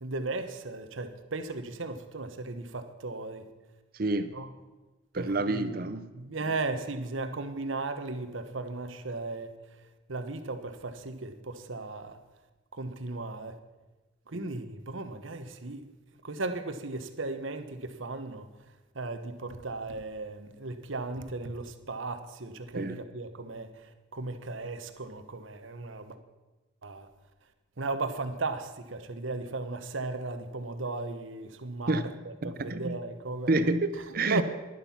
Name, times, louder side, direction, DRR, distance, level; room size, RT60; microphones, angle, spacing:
voice 1, 0.0-3.5 4.3-4.5 5.1-5.8 6.1-9.5 10.1-12.2 12.7-13.6 14.3-15.9 16.2-18.5 18.9-26.2 26.8-27.1 27.8-33.6 34.1-34.4, right 3 dB, 80° right, 1.1 m, -36 dB
voice 2, 3.9-4.3 5.1-6.1 14.3-14.4 22.7-23.0 31.9-32.1 32.4-33.0 33.5-34.4, right 2 dB, 45° right, 0.6 m, -29 dB
11.5 x 11.0 x 5.8 m
head